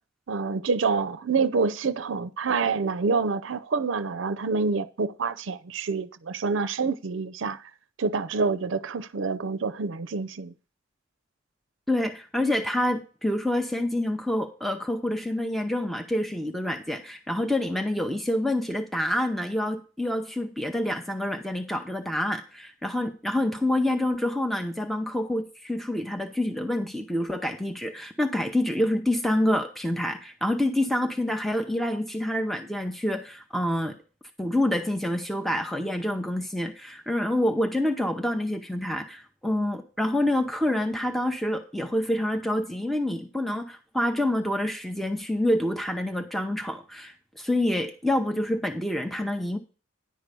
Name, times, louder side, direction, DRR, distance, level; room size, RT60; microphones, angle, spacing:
voice 1, 0.3-7.7 8.0-10.5, right 4 dB, 65° right, 0.5 m, -27 dB
voice 2, 11.9-34.0 34.4-49.6, left 1 dB, ahead, 0.6 m, -27 dB
10.5 x 4.6 x 6.7 m
head